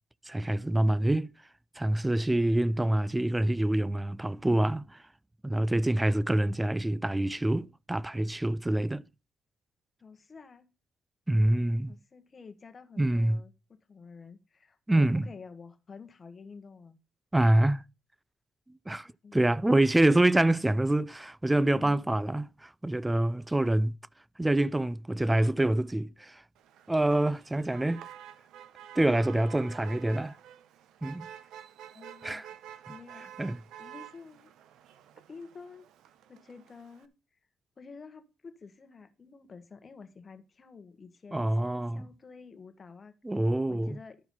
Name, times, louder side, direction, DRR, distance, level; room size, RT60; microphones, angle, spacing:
voice 1, 0.3-1.3 1.8-5.0 5.4-9.0 11.3-11.9 13.0-13.4 14.9-15.3 17.3-17.8 18.9-23.9 24.4-26.4 26.9-28.1 29.0-30.4 31.0-31.3 32.2-32.5 33.4-33.6 41.3-42.0 43.2-44.0, right 1 dB, 10° right, 0.4 m, -26 dB
voice 2, 10.0-10.6 11.9-17.0 19.2-19.8 21.7-22.0 31.9-32.4 32.9-33.3 33.8-34.5 35.3-35.9 36.3-37.1 37.8-43.1 43.7-44.2, left 5 dB, 35° left, 1.5 m, -49 dB
Motor vehicle (road), 26.5-37.0, right 10 dB, 85° right, 0.8 m, -49 dB
12.5 x 4.7 x 5.6 m
cardioid pair, 90°, 0 cm